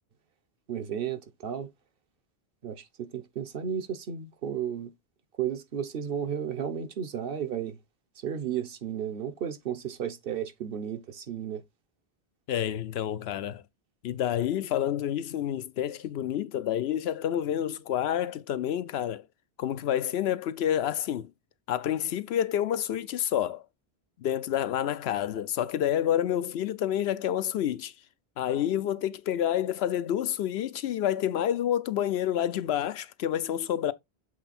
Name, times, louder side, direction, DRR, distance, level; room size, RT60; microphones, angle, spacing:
voice 1, 0.7-1.7 2.6-4.9 5.4-7.8 8.2-11.6, right 8 dB, 65° right, 1.0 m, -33 dB
voice 2, 12.5-13.6 14.0-19.2 19.6-21.3 21.7-23.6 24.2-27.9 28.4-33.9, left 10 dB, 80° left, 0.8 m, -28 dB
7.7 x 3.3 x 4.2 m
omnidirectional pair, 1.1 m